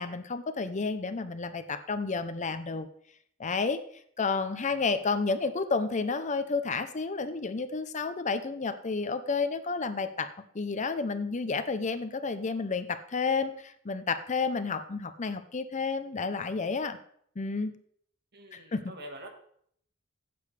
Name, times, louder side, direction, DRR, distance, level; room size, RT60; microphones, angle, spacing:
voice 1, 0.0-2.9 3.4-3.8 4.2-10.3 10.5-17.0 17.4-17.7 18.5-18.8, left 4 dB, 35° left, 10 dB, 0.6 m, -31 dB
voice 2, 4.5-4.9 18.3-19.3, right 1 dB, 50° right, 5 dB, 1.6 m, -46 dB
14.5 x 8.6 x 3.3 m, 0.65 s
head